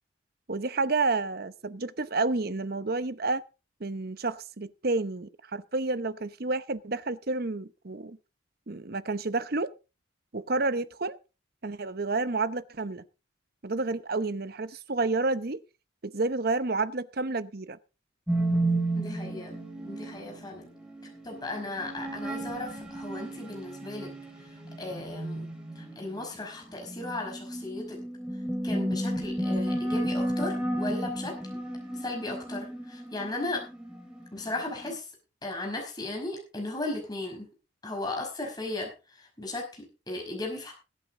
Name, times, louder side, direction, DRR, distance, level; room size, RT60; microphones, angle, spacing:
voice 1, 0.5-3.4 3.8-8.2 8.7-9.7 10.3-11.2 11.6-13.0 13.6-15.6 16.0-17.8, right 3 dB, 50° right, 0.8 m, -30 dB
Slow World Relax, 18.3-34.9, right 1 dB, 5° right, 2.9 m, -33 dB
voice 2, 18.9-19.6 19.8-20.7 21.2-24.1 24.8-25.5 25.8-28.0 28.6-31.4 31.9-33.6 34.3-35.1 35.4-37.5 37.8-40.7, left 2 dB, 20° left, 5.3 m, -36 dB
21.0 x 8.6 x 3.8 m
head